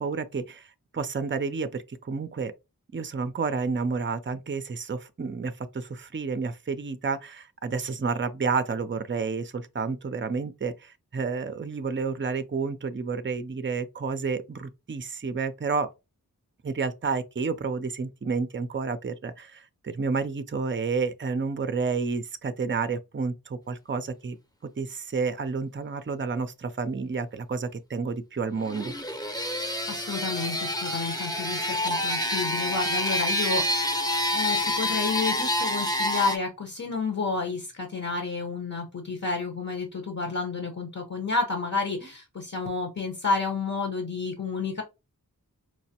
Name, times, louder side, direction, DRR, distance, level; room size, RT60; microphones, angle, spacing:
voice 1, 0.0-2.5 2.9-15.9 16.6-24.4 24.8-28.9, right 4 dB, 35° right, 0.5 m, -30 dB
sound 1, 28.6-36.4, left 1 dB, 10° left, 0.7 m, -28 dB
voice 2, 29.9-44.8, left 4 dB, 50° left, 0.9 m, -30 dB
4.6 x 2.1 x 2.8 m
wide cardioid pair, 40°, 35 cm